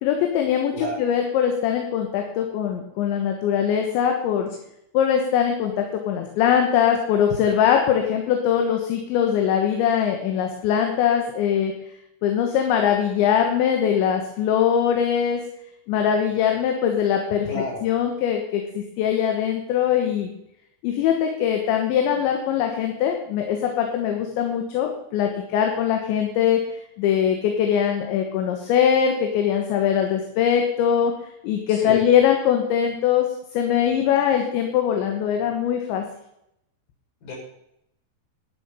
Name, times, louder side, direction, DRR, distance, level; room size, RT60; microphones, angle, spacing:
voice 1, 0.0-4.5 4.9-11.7 12.2-15.4 15.9-17.5 17.8-20.3 20.8-26.6 27.0-31.1 31.4-33.3 33.5-36.0, left 8 dB, 75° left, 3 dB, 3.4 m, -22 dB
voice 2, 17.5-17.8 31.7-32.0 37.2-37.3, left 2 dB, 45° left, -3 dB, 6.6 m, -30 dB
13.0 x 11.0 x 5.6 m, 0.78 s
omnidirectional pair, 5.7 m